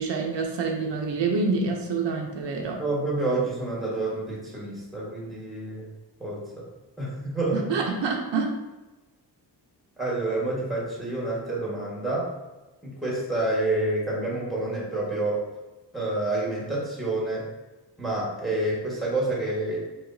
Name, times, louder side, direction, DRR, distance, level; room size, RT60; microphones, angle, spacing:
voice 1, 0.0-2.8 7.5-8.5, right 4 dB, 85° right, 2 dB, 0.8 m, -27 dB
voice 2, 2.8-5.9 6.2-6.6 7.0-7.7 10.0-12.3 12.8-15.4 15.9-17.5 18.0-19.8, right 2 dB, ahead, -5 dB, 1.5 m, -28 dB
4.8 x 4.0 x 2.7 m, 1.1 s
wide cardioid pair, 140°, 42 cm